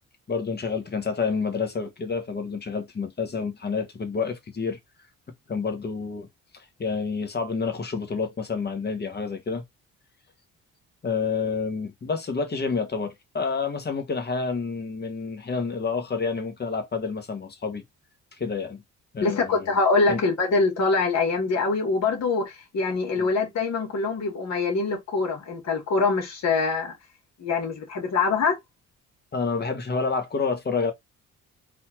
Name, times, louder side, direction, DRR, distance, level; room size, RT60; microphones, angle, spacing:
voice 1, 0.3-4.8 5.5-6.3 6.5-9.6 11.0-17.8 18.4-18.8 19.1-19.8 20.1-20.2 23.2-23.3 29.3-30.9, left 5 dB, 35° left, 1.4 m, -29 dB
voice 2, 19.2-26.9 27.4-28.6, left 4 dB, 60° left, 2.3 m, -24 dB
4.1 x 2.8 x 4.5 m
cardioid pair, 90°, 30 cm